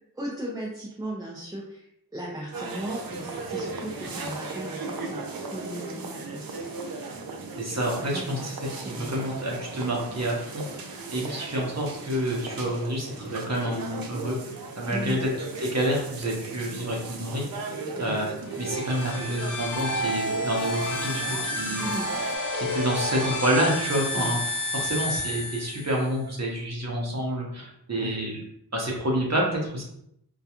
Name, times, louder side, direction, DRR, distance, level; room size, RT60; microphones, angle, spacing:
voice 1, 0.1-1.8 2.1-6.8 8.0-8.3 8.8-9.1 11.2-11.4 14.9-15.2 18.0-18.2 21.8-22.1 24.1-24.3 28.0-28.3, right 1 dB, 10° right, -4 dB, 0.5 m, -36 dB
sound 1, 2.5-22.4, right 3 dB, 65° right, 0.5 m, -37 dB
voice 2, 7.6-17.4 17.7-18.3 18.6-21.8 22.5-28.4 28.7-29.8, equal, 45° right, -2 dB, 0.8 m, -28 dB
sound 2, 18.5-26.1, left 1 dB, 55° left, 0.8 m, -30 dB
2.3 x 2.2 x 2.8 m, 0.74 s
cardioid pair, 40°, 38 cm